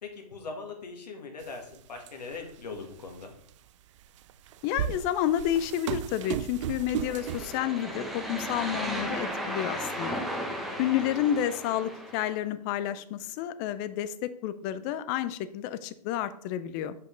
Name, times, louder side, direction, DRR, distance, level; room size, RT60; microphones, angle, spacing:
voice 1, 0.0-3.3 10.5-10.8, left 4 dB, 85° left, 2 dB, 1.9 m, -41 dB
sound 1, 1.4-1.5 2.0-2.5 3.2-3.3 4.3-7.6, right 11 dB, 50° right, 0.4 m, -34 dB
voice 2, 4.6-10.2 10.8-17.0, left 11 dB, 30° left, 13 dB, 0.4 m, -30 dB
sound 2, 6.9-12.4, equal, ahead, 0.7 m, -35 dB
7.1 x 5.4 x 3.8 m, 0.67 s
hypercardioid pair, 140°, 21 cm